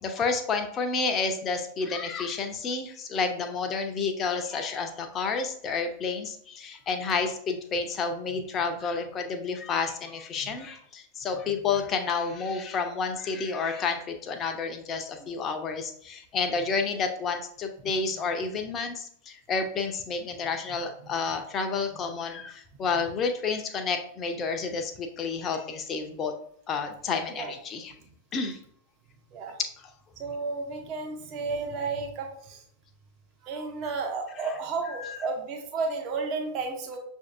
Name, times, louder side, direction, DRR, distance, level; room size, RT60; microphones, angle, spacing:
voice 1, 0.0-26.3 26.7-27.9 28.3-28.6 34.4-34.5 34.9-35.2, left 4 dB, 30° left, 5 dB, 0.6 m, -30 dB
voice 2, 30.2-32.6 33.4-37.0, right 4 dB, 35° right, 2 dB, 0.7 m, -32 dB
6.3 x 2.7 x 2.5 m, 0.65 s
figure-of-eight pair, 90°, 0 cm